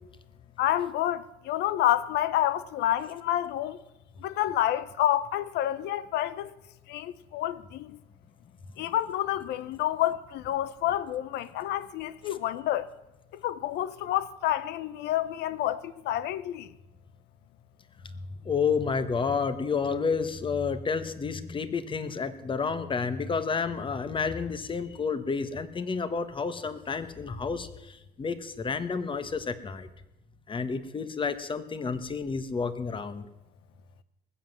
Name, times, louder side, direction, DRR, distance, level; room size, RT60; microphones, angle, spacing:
voice 1, 0.6-3.8 4.2-6.5 6.9-8.0 8.8-12.9 13.3-16.7, left 12 dB, 80° left, 0.7 m, -29 dB
voice 2, 18.4-29.9 30.5-33.3, left 5 dB, 30° left, 1.3 m, -30 dB
20.0 x 7.8 x 7.4 m
cardioid pair, 110°, 17 cm